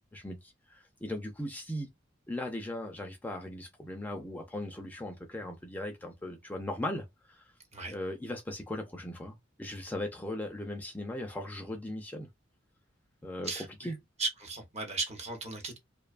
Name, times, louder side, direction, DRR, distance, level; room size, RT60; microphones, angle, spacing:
voice 1, 0.1-1.9 2.3-7.5 7.9-12.3 13.2-13.5 13.8-14.0, left 1 dB, 10° left, 0.4 m, -38 dB
voice 2, 13.4-13.9 14.2-15.8, right 3 dB, 35° right, 0.7 m, -36 dB
2.6 x 2.2 x 2.4 m
head